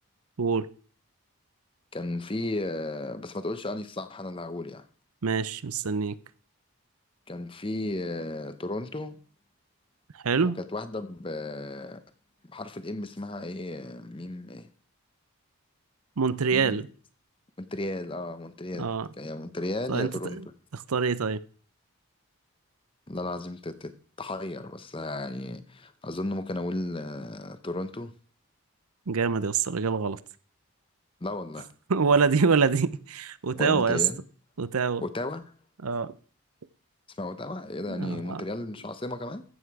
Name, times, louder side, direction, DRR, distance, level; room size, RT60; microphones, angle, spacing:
voice 1, 1.9-4.8 7.3-9.2 10.4-12.0 12.4-14.7 16.5-16.8 17.6-18.9 19.2-20.4 23.1-28.1 31.2-31.7 33.5-34.2 35.0-35.4 37.2-39.4, left 2 dB, 25° left, 0.8 m, -34 dB
voice 2, 5.2-6.2 10.2-10.6 16.2-16.9 18.8-19.1 19.9-20.4 20.7-21.4 29.1-30.2 31.9-34.0 34.6-35.1 35.8-36.1 37.9-38.4, right 5 dB, 80° right, 0.7 m, -25 dB
14.5 x 8.1 x 4.8 m
head